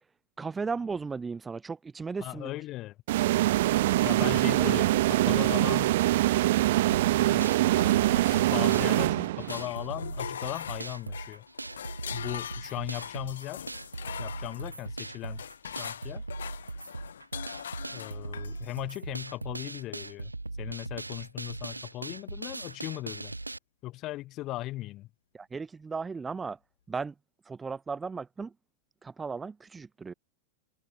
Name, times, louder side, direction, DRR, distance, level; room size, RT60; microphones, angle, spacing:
voice 1, 0.4-2.5 4.2-4.3 4.6-4.7 25.3-26.6 26.9-27.1 27.5-28.5 29.0-30.1, right 4 dB, 15° right, 2.9 m, -35 dB
voice 2, 2.2-2.9 4.0-6.0 7.2-7.5 8.3-11.4 12.1-13.6 14.2-15.4 15.8-16.2 17.9-20.3 20.6-23.3 23.8-25.1, left 17 dB, 35° left, 2.9 m, -38 dB
sound 1, 3.1-9.7, right 16 dB, 55° right, 0.9 m, -24 dB
sound 2, 7.4-23.6, right 2 dB, 85° right, 1.0 m, -39 dB
sound 3, 7.8-9.1 9.4-18.8, left 8 dB, 65° left, 1.1 m, -42 dB
figure-of-eight pair, 90°, 0 cm